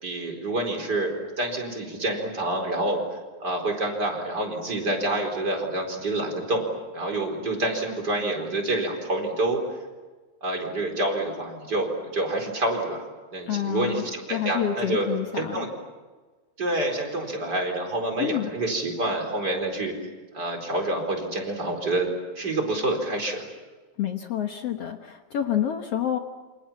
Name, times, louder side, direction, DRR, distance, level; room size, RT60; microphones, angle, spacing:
voice 1, 0.0-9.6 10.4-13.1 13.3-15.1 15.4-15.7 16.6-19.9 20.3-22.1 22.3-23.4, right 2 dB, 30° right, 2 dB, 4.9 m, -27 dB
voice 2, 13.5-15.7 18.2-18.5 24.0-26.2, left 10 dB, 60° left, 5 dB, 2.1 m, -28 dB
28.5 x 27.0 x 7.4 m, 1.3 s
omnidirectional pair, 3.4 m